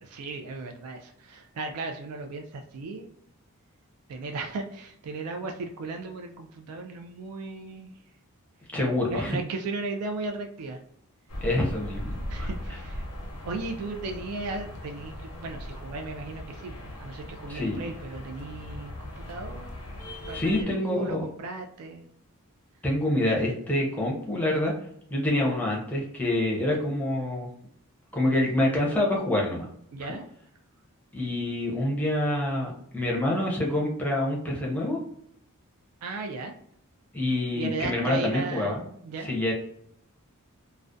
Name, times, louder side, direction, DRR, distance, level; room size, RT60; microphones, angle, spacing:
voice 1, 0.0-3.1 4.1-7.9 9.1-10.8 12.3-13.1 13.5-19.7 20.2-22.0 29.9-30.3 36.0-36.5 37.6-39.3, right 3 dB, 85° right, 3 dB, 0.3 m, -36 dB
voice 2, 8.7-9.4 11.4-12.5 17.5-17.8 20.3-21.3 22.8-24.7 25.1-27.5 28.1-29.7 30.0-30.1 31.1-35.0 37.1-38.8 39.2-39.5, left 1 dB, 5° left, -3 dB, 0.5 m, -26 dB
sound 1, 11.3-20.6, left 1 dB, 90° left, 0.6 m, -39 dB
2.3 x 2.1 x 2.5 m, 0.70 s
head